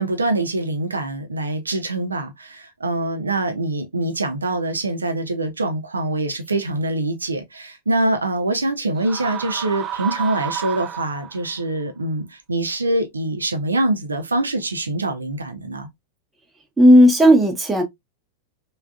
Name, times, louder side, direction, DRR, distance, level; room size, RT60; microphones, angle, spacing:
voice 1, 0.0-15.9, right 2 dB, 75° right, 0.6 m, -24 dB
sound 1, 9.0-11.6, right 9 dB, 30° right, 0.4 m, -30 dB
voice 2, 16.8-17.8, equal, 10° right, 0.8 m, -12 dB
3.5 x 2.4 x 2.2 m
figure-of-eight pair, 90°, 0 cm